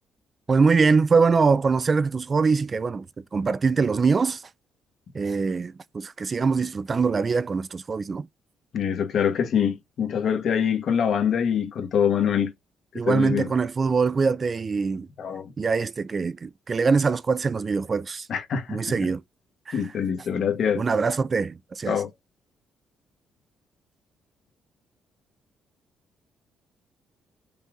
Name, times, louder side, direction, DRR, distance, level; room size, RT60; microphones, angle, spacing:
voice 1, 0.5-3.1 3.3-4.4 5.1-8.3 12.9-15.1 15.6-18.3 18.7-19.2 19.7-19.8 20.8-22.0, right 4 dB, 35° right, 0.3 m, -23 dB
voice 2, 8.7-12.5 13.1-13.5 15.2-15.5 18.3-18.8 19.7-20.8 21.9-22.1, left 8 dB, 65° left, 1.4 m, -24 dB
5.4 x 2.4 x 3.7 m
cardioid pair, 90°, 0 cm